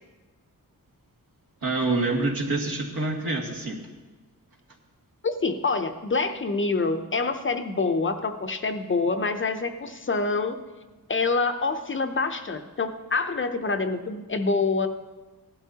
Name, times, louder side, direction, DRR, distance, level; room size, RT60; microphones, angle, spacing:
voice 1, 1.6-3.8, right 2 dB, 80° right, -1 dB, 2.1 m, -26 dB
voice 2, 5.2-10.6 11.1-14.9, left 3 dB, 35° left, 7 dB, 0.6 m, -26 dB
17.5 x 12.0 x 2.8 m, 1.2 s
wide cardioid pair, 165°, 35 cm